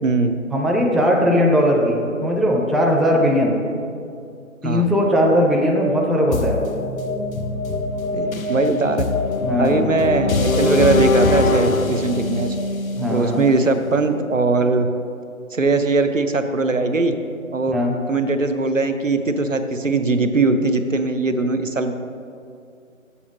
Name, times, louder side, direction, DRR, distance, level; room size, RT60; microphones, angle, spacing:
voice 1, 0.0-0.3 4.6-4.9 8.1-9.1 9.6-12.6 13.1-14.9 15.5-17.1 17.5-17.8 18.1-21.9, right 3 dB, 65° right, 8 dB, 0.6 m, -20 dB
voice 2, 0.5-3.6 4.6-6.6 9.4-9.9 13.0-13.4 17.7-17.9, equal, ahead, -1 dB, 0.5 m, -18 dB
sound 1, 6.3-14.2, left 3 dB, 75° left, 0.6 m, -22 dB
7.1 x 5.1 x 5.9 m, 2.4 s
figure-of-eight pair, 175°, 42 cm